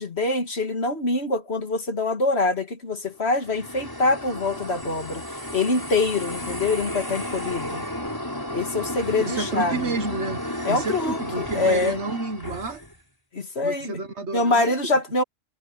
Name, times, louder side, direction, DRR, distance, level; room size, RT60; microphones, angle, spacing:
voice 1, 0.0-5.2 5.5-7.9 8.5-9.9 10.7-12.0 13.3-14.0 14.3-15.2, left 3 dB, 50° left, 2.3 m, -24 dB
sound 1, 3.2-13.0, equal, 15° left, 5.7 m, -33 dB
voice 2, 9.3-10.4 10.7-12.8 13.6-14.7, right 3 dB, 55° right, 1.5 m, -30 dB
omnidirectional pair, 1.4 m